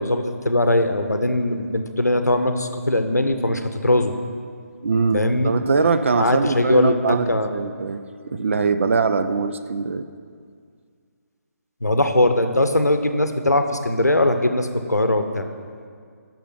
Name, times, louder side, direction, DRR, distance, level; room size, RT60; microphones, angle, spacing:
voice 1, 0.0-4.1 5.1-5.5 6.1-7.5 11.8-15.5, left 1 dB, 85° left, 7 dB, 0.7 m, -20 dB
voice 2, 4.8-10.1, right 4 dB, 50° right, 10 dB, 0.4 m, -22 dB
6.7 x 6.4 x 5.9 m, 2.1 s
figure-of-eight pair, 145°, 9 cm